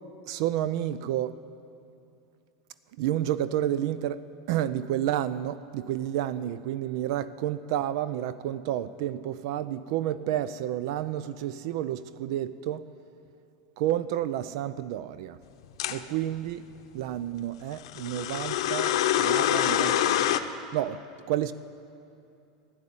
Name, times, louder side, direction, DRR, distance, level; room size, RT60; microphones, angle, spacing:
voice 1, 0.3-1.4 3.0-12.9 13.8-15.4 15.9-16.7 16.9-20.5 20.7-21.5, right 12 dB, 65° right, 0.4 m, -30 dB
sound 1, 15.8-16.0 17.8-20.4, left 11 dB, 75° left, 0.7 m, -25 dB
12.0 x 11.0 x 8.7 m
supercardioid pair, 130°, 3 cm